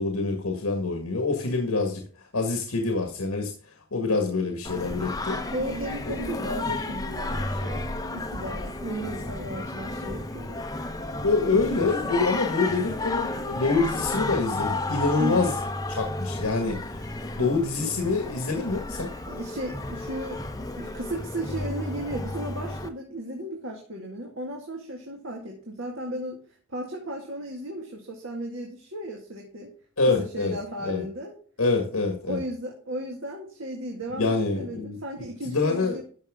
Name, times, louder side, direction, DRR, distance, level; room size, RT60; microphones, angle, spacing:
voice 1, 0.0-3.5 3.9-5.4 11.2-15.6 15.9-19.1 30.0-30.5 30.8-31.0 31.6-32.4 34.2-35.0 35.5-36.0, left 3 dB, 90° left, 3 dB, 1.8 m, -26 dB
Singing, 4.6-22.9, left 2 dB, 15° left, 0.8 m, -32 dB
voice 2, 5.5-10.7 15.2-15.5 17.4-17.5 17.8-17.9 19.1-26.4 26.7-29.7 30.2-31.3 32.2-36.0, right 1 dB, 65° right, 0 dB, 2.1 m, -35 dB
12.5 x 6.2 x 3.7 m, 0.44 s
head